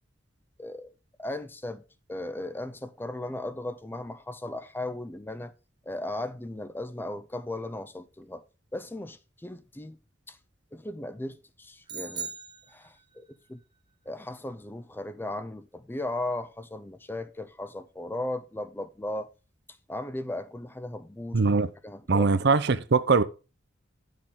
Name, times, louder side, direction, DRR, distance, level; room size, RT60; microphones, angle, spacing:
voice 1, 0.6-0.9 1.2-1.8 2.1-5.5 5.9-8.4 8.7-10.0 10.3-10.4 10.7-12.3 12.7-13.6 14.1-19.3 19.9-21.4 21.8-22.3, left 1 dB, 10° left, 0.5 m, -36 dB
sound 1, 11.9-13.3, right 5 dB, 25° right, 0.9 m, -39 dB
voice 2, 21.3-21.7 22.1-23.2, right 4 dB, 60° right, 0.6 m, -22 dB
10.0 x 6.5 x 3.7 m
head